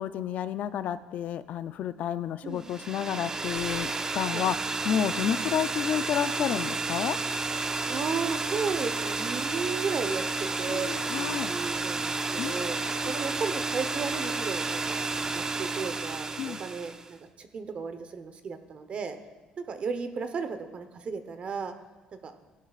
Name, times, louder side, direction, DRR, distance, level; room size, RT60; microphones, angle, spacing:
voice 1, 0.0-7.2 10.7-11.5 12.4-13.1 16.4-16.6, left 9 dB, 65° left, 13 dB, 0.5 m, -31 dB
sound 1, 2.6-17.1, right 3 dB, 20° right, 0.6 m, -31 dB
voice 2, 7.9-10.9 11.2-12.8 13.1-19.2 19.6-21.7 22.2-22.3, right 5 dB, 45° right, 9 dB, 1.0 m, -34 dB
17.0 x 11.0 x 2.5 m, 1.3 s
cardioid pair, 120°, 3 cm